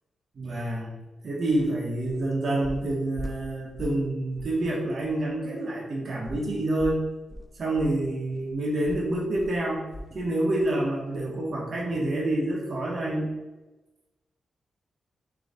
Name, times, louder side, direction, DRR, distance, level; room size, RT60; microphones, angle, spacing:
voice 1, 0.3-0.9 1.2-7.0 7.5-9.9 10.1-13.3, right 1 dB, 55° right, -3 dB, 1.1 m, -27 dB
sound 1, 1.5-1.7 2.0-2.3 2.6-4.1 4.4-4.6 5.0-5.1 6.3-10.3 10.6-10.8 11.1-11.2, left 1 dB, 15° left, 0.4 m, -41 dB
3.9 x 3.0 x 3.6 m, 1.1 s
cardioid pair, 100°, 0 cm